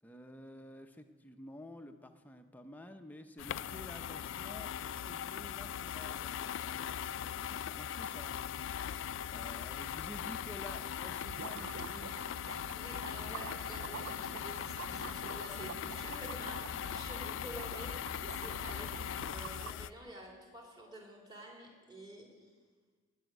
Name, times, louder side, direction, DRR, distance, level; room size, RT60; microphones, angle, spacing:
voice 1, 0.0-8.5 9.3-12.2, left 1 dB, 10° left, 6 dB, 0.7 m, -51 dB
sound 1, 3.4-19.9, left 9 dB, 60° left, 0.3 m, -40 dB
sound 2, 11.1-20.1, right 7 dB, 70° right, 0.4 m, -48 dB
voice 2, 12.3-22.5, right 1 dB, 20° right, -1 dB, 2.8 m, -50 dB
19.0 x 6.3 x 9.3 m, 1.5 s
head